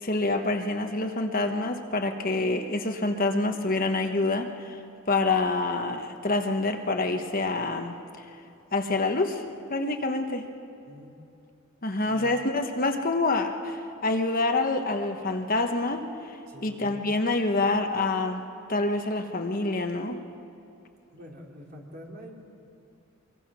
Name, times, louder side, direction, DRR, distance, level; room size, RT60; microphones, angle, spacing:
voice 1, 0.0-4.8 5.1-8.2 8.7-9.4 9.7-10.5 11.8-18.4 18.7-20.2, left 2 dB, 40° left, 5 dB, 1.2 m, -27 dB
voice 2, 10.9-11.2 12.1-12.3 16.5-17.0 21.1-22.3, equal, 45° right, -1 dB, 3.3 m, -45 dB
23.5 x 23.0 x 6.2 m, 2.7 s
head